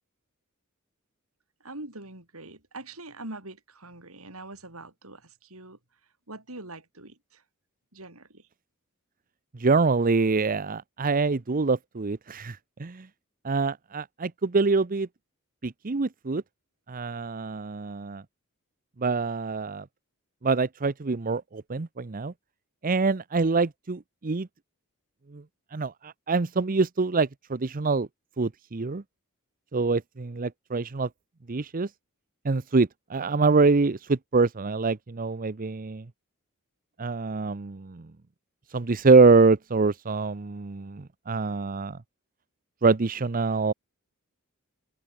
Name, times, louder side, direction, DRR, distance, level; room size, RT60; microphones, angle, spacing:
voice 1, 1.6-5.8 6.3-7.4 7.9-8.5, right 2 dB, 80° right, 7.1 m, -43 dB
voice 2, 9.6-13.1 13.4-15.1 15.6-16.4 16.9-18.2 19.0-19.8 20.4-22.3 22.8-24.5 25.3-25.4 25.7-28.1 28.4-29.0 29.7-31.1 31.5-31.9 32.4-36.0 37.0-38.1 38.7-42.0 42.8-43.7, right 4 dB, 40° right, 0.7 m, -25 dB
open air
head